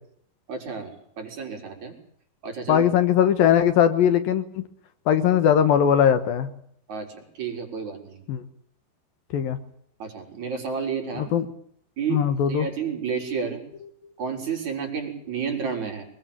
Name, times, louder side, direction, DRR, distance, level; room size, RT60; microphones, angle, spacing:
voice 1, 0.5-2.0 2.4-2.8 6.9-8.2 10.0-11.3 12.0-12.2 12.5-13.6 14.2-16.1, right 6 dB, 45° right, 2 dB, 5.9 m, -31 dB
voice 2, 2.7-4.7 5.1-6.5 8.3-8.4 9.3-9.6 11.2-11.5 12.1-12.7, left 9 dB, 70° left, 11 dB, 2.8 m, -20 dB
24.5 x 21.5 x 7.4 m, 0.68 s
omnidirectional pair, 4.7 m